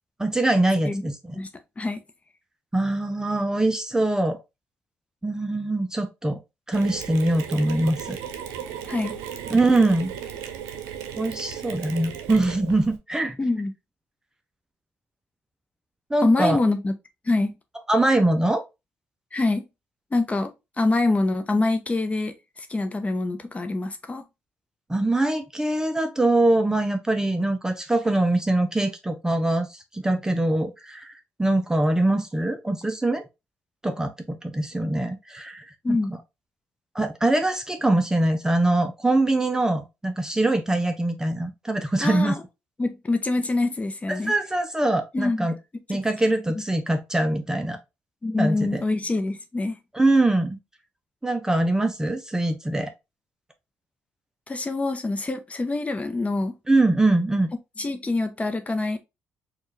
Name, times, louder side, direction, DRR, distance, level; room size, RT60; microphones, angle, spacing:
voice 1, 0.2-1.4 2.7-4.4 5.2-6.4 6.7-8.2 9.5-10.1 11.2-13.4 16.1-16.6 17.9-18.6 24.9-33.2 33.8-36.0 36.9-42.4 44.1-45.5 45.9-47.8 48.4-48.8 49.9-50.6 51.2-52.9 56.7-57.5, right 2 dB, 10° right, 0.5 m, -23 dB
Mechanisms, 6.7-13.0, right 9 dB, 90° right, 0.6 m, -36 dB
voice 2, 8.9-9.2 13.4-13.7 16.2-16.9 17.3-17.6 19.3-19.7 20.1-20.5 20.8-24.2 35.8-36.1 42.0-42.4 42.8-44.3 45.1-45.5 48.2-49.8 54.5-56.5 57.8-59.0, left 2 dB, 25° left, 0.8 m, -25 dB
4.4 x 2.4 x 3.2 m
supercardioid pair, 65°, 5 cm